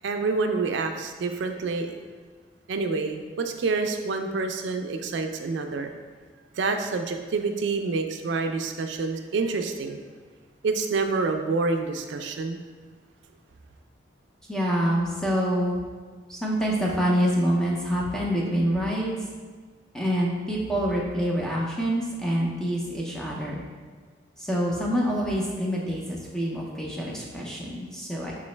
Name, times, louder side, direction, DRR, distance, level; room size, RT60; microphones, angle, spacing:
voice 1, 0.0-1.9 2.7-5.9 6.6-10.0 10.6-12.6, right 4 dB, 75° right, 5 dB, 0.4 m, -27 dB
voice 2, 14.5-15.8 16.3-19.2 19.9-23.6 24.4-28.3, equal, 5° left, -4 dB, 0.5 m, -26 dB
3.8 x 3.0 x 3.2 m, 1.5 s
head